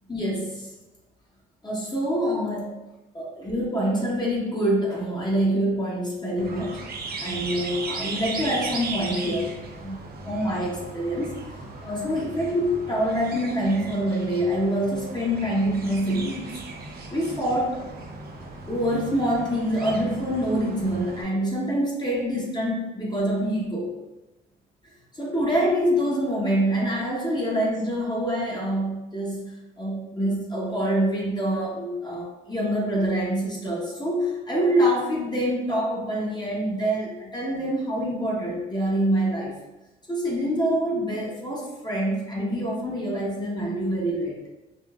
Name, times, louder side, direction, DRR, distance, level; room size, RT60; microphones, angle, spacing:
voice 1, 0.1-0.7 1.6-2.8 3.1-6.8 7.2-9.5 9.8-11.3 11.8-16.5 17.1-17.8 18.7-23.9 25.1-39.5 40.1-44.4, equal, 20° left, -4 dB, 1.0 m, -26 dB
sound 1, 6.4-21.2, right 3 dB, 50° right, 0.6 m, -37 dB
5.1 x 2.4 x 2.4 m, 1.0 s
cardioid pair, 90°, 20 cm